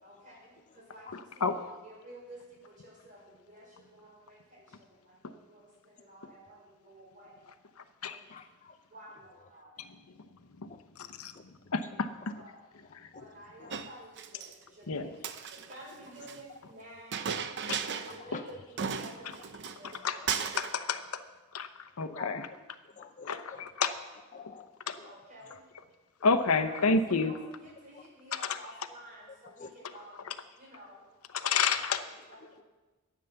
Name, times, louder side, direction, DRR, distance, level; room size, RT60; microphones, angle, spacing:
voice 1, 0.0-7.4 8.1-8.4 8.9-10.0 12.3-12.5 13.2-15.1 15.5-17.3 17.8-20.2 20.5-20.6 25.0-25.6 26.5-31.1 31.4-32.6, right 1 dB, 40° right, -3 dB, 5.2 m, -51 dB
voice 2, 8.3-8.8 10.7-10.8 13.6-13.7 18.3-18.4 22.1-22.4 23.0-23.7 24.3-24.7 25.0-25.1 29.6-29.7 31.3-31.4, left 6 dB, 35° left, 8 dB, 0.6 m, -46 dB
voice 3, 11.7-12.3 14.9-15.0 17.7-17.8 20.0-20.2 20.6-21.2 21.5-21.7 22.0-22.5 23.3-23.9 24.9-25.0 26.2-27.3 31.3-32.0, left 4 dB, 80° left, 9 dB, 0.9 m, -29 dB
Chink clink, 13.7-14.5 15.1-16.4 17.1-18.2 18.5-18.6 18.8-20.0 20.3-20.8, right 6 dB, 55° right, 0.7 m, -36 dB
13.0 x 9.4 x 6.9 m, 1.2 s
head